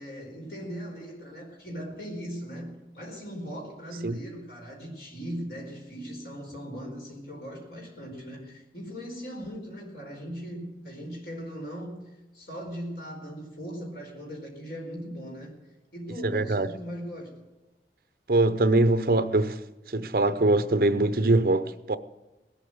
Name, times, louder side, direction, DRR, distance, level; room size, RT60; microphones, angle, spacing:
voice 1, 0.0-15.5 15.9-17.3, equal, 55° left, 4.5 m, -39 dB
voice 2, 16.2-16.7 18.3-19.6 19.9-22.0, right 2 dB, 55° right, 0.7 m, -23 dB
19.0 x 8.4 x 7.8 m
head